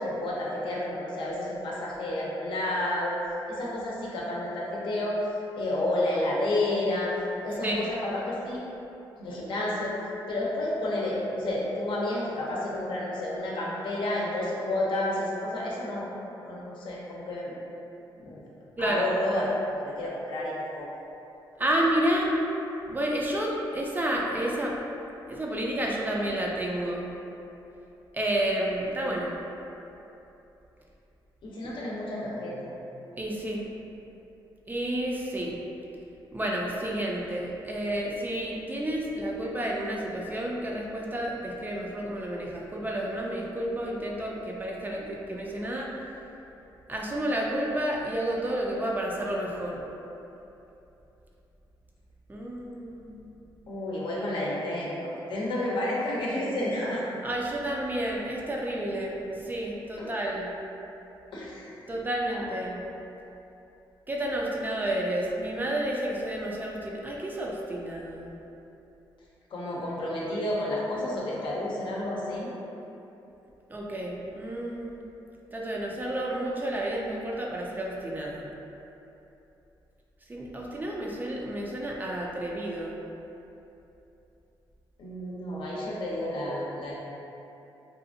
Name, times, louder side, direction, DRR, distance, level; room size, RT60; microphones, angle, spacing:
voice 1, 0.0-3.2 3.5-5.2 5.6-7.1 7.4-8.6 9.2-9.9 10.3-16.1 16.4-17.5 18.2-18.4 18.8-19.5 19.8-20.9 31.4-32.7 53.7-57.0 60.0-60.2 61.3-61.8 62.3-62.4 69.5-72.5 85.0-86.9, left 1 dB, 70° left, -5 dB, 0.6 m, -30 dB
voice 2, 21.6-22.3 22.9-24.8 25.3-27.1 28.1-29.4 33.2-33.6 34.7-35.6 36.3-45.9 46.9-49.8 52.3-53.2 57.2-60.5 61.9-62.8 64.1-68.3 73.7-75.0 75.5-78.5 80.3-83.0, right 1 dB, 20° right, -2 dB, 0.4 m, -30 dB
2.7 x 2.4 x 2.6 m, 2.9 s
cardioid pair, 75°, 9 cm